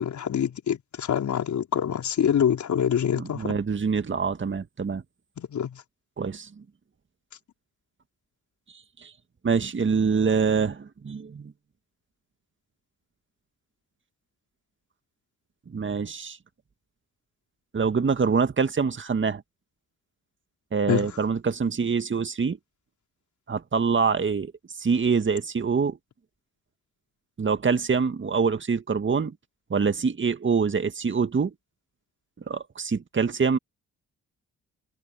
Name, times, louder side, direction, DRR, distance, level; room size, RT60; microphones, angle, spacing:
voice 1, 0.0-3.6 5.4-5.8 20.9-21.1, left 9 dB, 60° left, 4.8 m, -25 dB
voice 2, 3.2-5.0 6.2-6.6 8.7-9.1 9.4-11.5 15.7-16.4 17.7-19.4 20.7-22.6 23.5-24.5 24.8-26.0 27.4-29.4 29.7-31.5 32.5-33.6, right 5 dB, 35° right, 2.1 m, -25 dB
hypercardioid pair, 45°, 32 cm